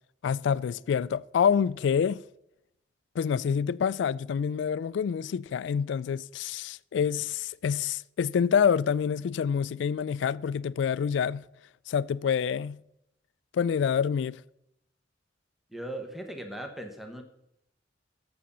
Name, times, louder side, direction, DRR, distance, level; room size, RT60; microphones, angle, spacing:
voice 1, 0.2-2.2 3.2-11.4 11.9-12.8 13.5-14.4, left 7 dB, 75° left, 0.3 m, -27 dB
voice 2, 15.7-17.2, right 1 dB, ahead, 0.9 m, -38 dB
7.6 x 7.0 x 6.7 m
head